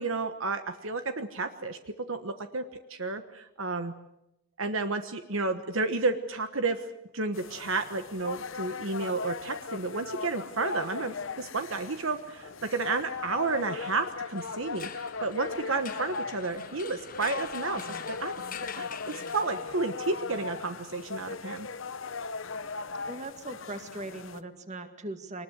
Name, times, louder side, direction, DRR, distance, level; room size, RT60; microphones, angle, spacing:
voice 1, 0.0-1.8 2.1-2.6 2.9-3.9 4.6-6.9 7.1-18.3 18.7-21.7, right 3 dB, 65° right, 8 dB, 1.3 m, -31 dB
sound 1, 7.3-24.4, left 4 dB, 60° left, 0.9 m, -38 dB
sound 2, 14.3-20.0, left 7 dB, 40° left, 1.5 m, -45 dB
voice 2, 23.1-25.4, right 2 dB, 30° right, 7 dB, 2.0 m, -39 dB
24.0 x 20.0 x 8.1 m, 0.87 s
head